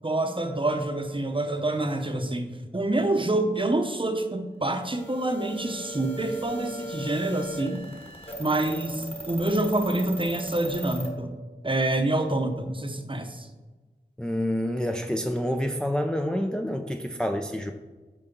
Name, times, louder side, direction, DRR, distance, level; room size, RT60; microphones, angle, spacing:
voice 1, 0.0-7.8 8.4-11.3 11.6-13.5, right 2 dB, 30° right, 6 dB, 0.8 m, -27 dB
sound 1, 4.9-11.1, right 1 dB, 35° left, 1.5 m, -38 dB
voice 2, 14.2-17.7, equal, 5° left, 5 dB, 0.4 m, -28 dB
5.8 x 4.3 x 5.2 m, 1.3 s
wide cardioid pair, 50°, 18 cm